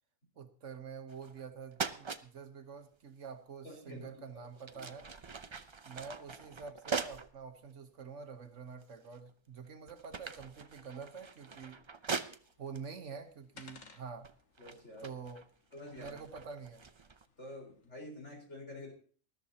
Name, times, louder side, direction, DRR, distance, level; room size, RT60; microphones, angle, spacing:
voice 1, 0.4-5.1 5.8-11.8 12.6-14.3 15.0-15.4 16.0-16.9, right 5 dB, 65° right, 7 dB, 1.4 m, -47 dB
sound 1, 1.1-1.5 1.7-2.3 3.9-4.1 4.5-7.4 8.0-8.1 8.8-9.3 9.7-12.8 13.7-13.9 14.2-17.3, right 5 dB, 40° right, 0.4 m, -42 dB
voice 2, 3.6-4.4 4.7-4.8 14.6-15.1 15.7-16.2 17.4-18.9, left 1 dB, 60° left, -1 dB, 4.9 m, -48 dB
sound 2, 12.4-17.9, left 4 dB, 75° left, 1.8 m, -61 dB
20.0 x 13.0 x 2.8 m, 0.42 s
omnidirectional pair, 1.4 m